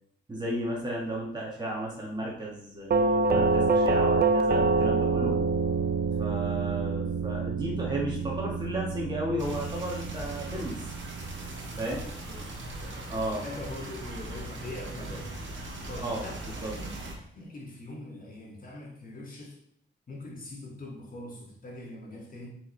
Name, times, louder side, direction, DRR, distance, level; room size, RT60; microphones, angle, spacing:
voice 1, 0.3-5.3 6.2-10.9 11.8-12.0 13.1-13.4 16.0-16.2 16.6-16.7, right 1 dB, 20° right, -4 dB, 1.8 m, -33 dB
Doorbell, 2.9-11.7, right 3 dB, 55° right, 0.4 m, -27 dB
sound 1, 9.4-17.1, right 2 dB, 75° right, 1.6 m, -40 dB
voice 2, 12.3-15.4 15.9-16.9 17.4-19.6 20.1-22.5, left 2 dB, 45° left, -2 dB, 2.1 m, -42 dB
7.6 x 4.9 x 3.3 m, 0.70 s
wide cardioid pair, 100°, 19 cm